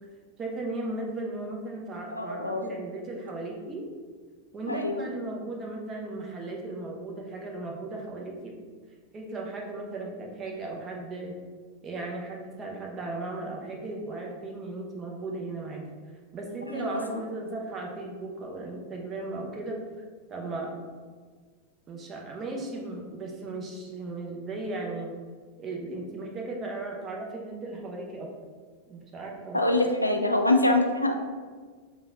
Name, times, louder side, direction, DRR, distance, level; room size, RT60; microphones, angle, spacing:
voice 1, 0.4-3.9 4.5-8.5 9.1-11.4 11.8-15.9 16.3-19.8 20.3-20.8 21.9-25.2 25.6-28.3 28.9-29.7, right 2 dB, 25° right, -1 dB, 0.7 m, -36 dB
voice 2, 2.1-2.7 4.7-5.1 16.7-17.2 29.5-31.1, left 2 dB, 85° left, 4 dB, 0.3 m, -25 dB
3.7 x 2.3 x 3.7 m, 1.5 s
figure-of-eight pair, 90°, 0 cm